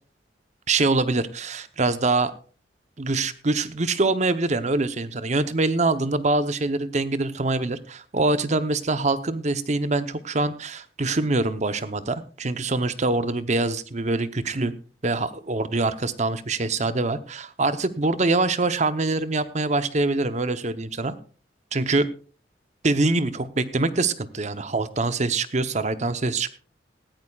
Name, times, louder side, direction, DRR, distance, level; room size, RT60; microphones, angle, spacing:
voice 1, 0.7-2.3 3.0-14.7 15.0-21.2 21.7-22.1 22.8-26.6, right 3 dB, 40° right, 12 dB, 0.8 m, -24 dB
18.5 x 14.0 x 2.4 m, 0.39 s
head